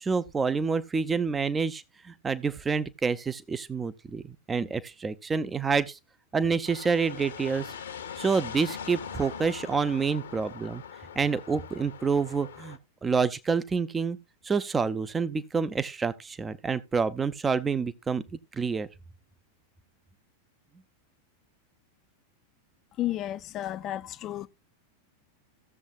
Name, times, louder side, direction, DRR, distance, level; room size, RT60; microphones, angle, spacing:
voice 1, 0.0-6.0 6.3-7.7 8.2-10.8 11.2-14.2 14.4-18.2 18.5-18.9, right 5 dB, 15° right, 0.7 m, -28 dB
sound 1, 6.6-12.8, left 7 dB, 65° left, 1.2 m, -41 dB
voice 2, 23.0-24.5, left 13 dB, 35° left, 0.6 m, -32 dB
16.0 x 7.2 x 2.5 m
figure-of-eight pair, 90°, 0 cm